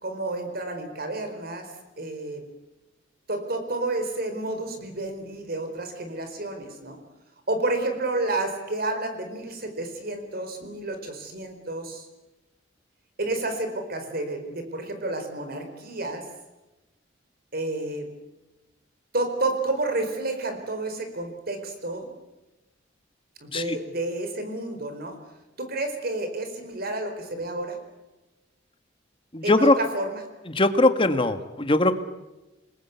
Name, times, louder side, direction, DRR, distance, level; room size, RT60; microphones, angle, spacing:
voice 1, 0.0-2.4 3.3-7.0 7.5-12.1 13.2-16.3 17.5-18.1 19.1-22.1 23.4-25.2 25.6-27.8 29.4-30.2, right 2 dB, 55° right, 6 dB, 4.4 m, -30 dB
voice 2, 29.3-29.7 30.5-31.9, left 2 dB, 30° left, 10 dB, 1.6 m, -20 dB
27.5 x 20.5 x 8.2 m, 1.0 s
head